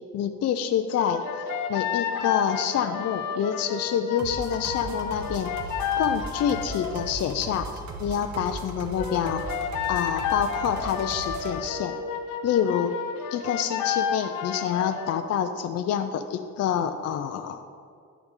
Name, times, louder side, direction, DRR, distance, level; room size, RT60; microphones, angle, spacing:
voice 1, 0.1-1.2 1.7-5.5 6.0-7.7 8.0-9.4 9.9-11.9 12.4-13.0 13.3-17.6, left 8 dB, 55° left, 7 dB, 0.5 m, -27 dB
sound 1, 1.0-7.2 9.0-15.2, left 7 dB, 90° left, 0.7 m, -31 dB
sound 2, 4.2-11.6, right 3 dB, 65° right, 1.1 m, -38 dB
13.5 x 4.7 x 3.7 m, 2.2 s
cardioid pair, 90°, 30 cm